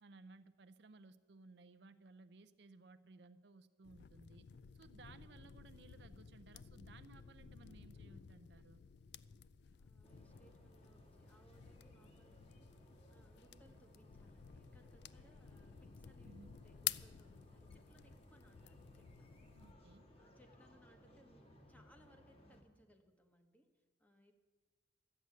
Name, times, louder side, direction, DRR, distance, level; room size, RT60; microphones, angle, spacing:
voice 1, 0.0-4.5 4.7-8.8 16.2-16.6 19.5-20.1, right 3 dB, 60° right, 10 dB, 0.5 m, -60 dB
sound 1, 3.8-19.7, left 11 dB, 60° left, 0.4 m, -52 dB
voice 2, 9.8-19.4 20.2-24.3, equal, 10° left, 5 dB, 1.1 m, -69 dB
sound 2, 10.0-22.6, equal, 30° left, 1.7 m, -63 dB
13.0 x 7.9 x 9.4 m, 1.4 s
head